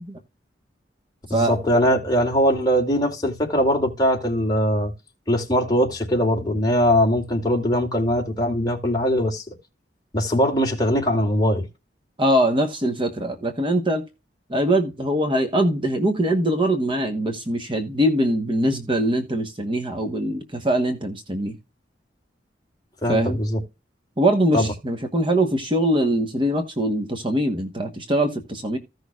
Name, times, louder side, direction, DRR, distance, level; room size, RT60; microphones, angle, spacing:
voice 1, 1.3-4.9 5.3-9.4 10.1-11.7 23.0-23.6 24.5-24.7, equal, 20° left, 2.6 m, -21 dB
voice 2, 12.2-14.0 14.5-21.6 23.1-23.4 24.2-28.8, right 1 dB, 25° right, 1.1 m, -22 dB
15.5 x 6.3 x 2.4 m
head